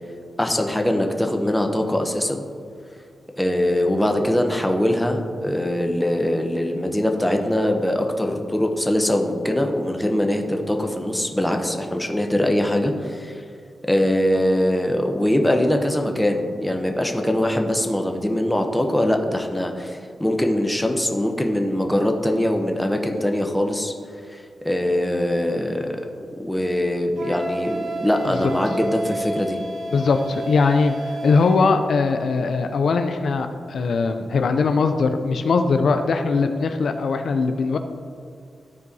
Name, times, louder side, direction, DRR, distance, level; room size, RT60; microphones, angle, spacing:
voice 1, 0.4-2.4 3.4-13.4 13.8-23.9 24.3-26.0 26.4-29.6, left 1 dB, 5° left, 3 dB, 0.7 m, -22 dB
Wind instrument woodwind instrument, 27.2-31.7, right 1 dB, 80° right, 1.5 m, -31 dB
voice 2, 29.9-37.8, left 4 dB, 65° left, 7 dB, 0.4 m, -20 dB
13.0 x 4.6 x 2.7 m, 2.3 s
wide cardioid pair, 110°, 0 cm